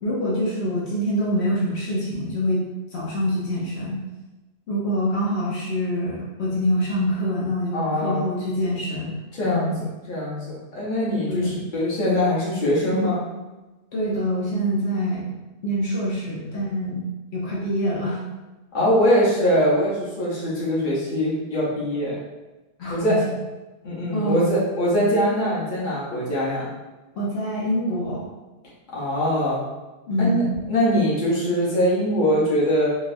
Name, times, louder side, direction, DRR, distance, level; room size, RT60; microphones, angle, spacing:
voice 1, 0.0-2.6 2.9-4.0 4.7-9.2 9.4-9.7 11.3-11.6 13.9-15.3 15.6-17.0 17.3-18.2 22.8-23.2 24.1-24.4 27.2-28.2 30.1-30.6, equal, 80° left, -6 dB, 1.1 m, -25 dB
voice 2, 7.7-8.3 9.3-9.7 10.1-13.2 18.7-22.2 22.9-23.1 23.8-26.7 28.9-29.6 30.2-30.4 30.7-32.9, equal, 50° left, -7 dB, 1.1 m, -22 dB
3.7 x 2.4 x 2.6 m, 1.1 s
omnidirectional pair, 1.1 m